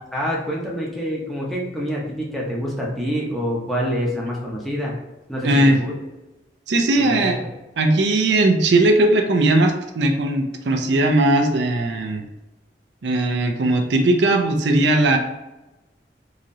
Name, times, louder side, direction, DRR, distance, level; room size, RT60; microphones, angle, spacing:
voice 1, 0.1-4.9 5.3-5.9 7.0-7.5, equal, ahead, -4 dB, 0.7 m, -26 dB
voice 2, 5.4-5.8 6.7-7.4 7.8-12.2 13.0-15.2, right 2 dB, 75° right, 4 dB, 0.5 m, -18 dB
3.8 x 3.0 x 2.7 m, 1.0 s
head